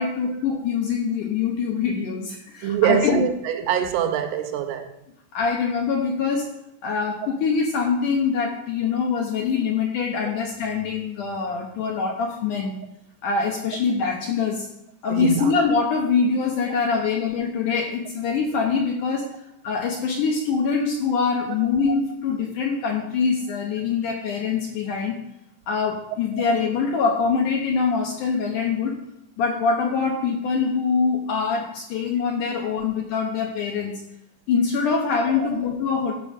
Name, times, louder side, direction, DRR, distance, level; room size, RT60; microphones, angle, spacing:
voice 1, 0.0-3.3 5.3-6.5 6.8-12.8 13.2-14.7 15.0-19.4 19.6-25.2 25.7-29.0 29.4-34.0 34.5-36.2, left 5 dB, 75° left, 2.0 m, -24 dB
voice 2, 2.6-4.9 15.1-15.5 35.4-35.5, right 9 dB, 85° right, 2.7 m, -24 dB
14.0 x 5.2 x 5.2 m
omnidirectional pair, 4.8 m